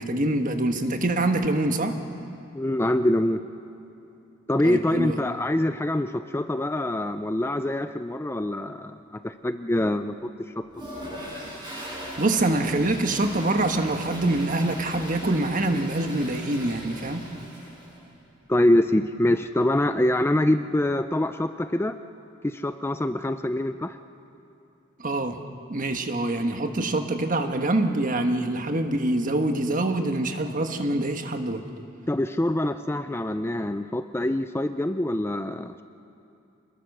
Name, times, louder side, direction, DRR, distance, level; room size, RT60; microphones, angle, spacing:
voice 1, 0.0-2.0 4.6-5.2 12.2-17.3 25.0-25.4 25.7-31.6, right 2 dB, 40° right, 6 dB, 1.4 m, -25 dB
voice 2, 2.5-3.4 4.5-10.6 18.5-22.0 22.4-24.0 32.1-35.8, left 1 dB, 10° left, 9 dB, 0.5 m, -25 dB
Toilet flush, 10.7-18.0, right 1 dB, 25° right, 7.4 m, -38 dB
26.5 x 20.5 x 6.7 m, 2.9 s
head